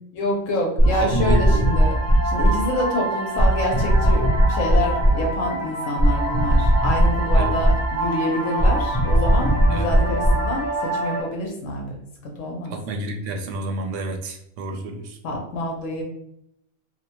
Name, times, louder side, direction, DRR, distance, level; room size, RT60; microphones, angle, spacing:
voice 1, 0.2-2.0 2.2-12.7 15.2-16.0, left 1 dB, 80° left, 0 dB, 1.0 m, -27 dB
sound 1, 0.8-11.2, right 1 dB, 20° right, 0.4 m, -20 dB
voice 2, 1.0-1.7 7.3-7.6 9.7-9.9 12.7-15.2, right 2 dB, 75° right, 4 dB, 0.9 m, -29 dB
2.8 x 2.1 x 2.9 m, 0.80 s
omnidirectional pair, 1.4 m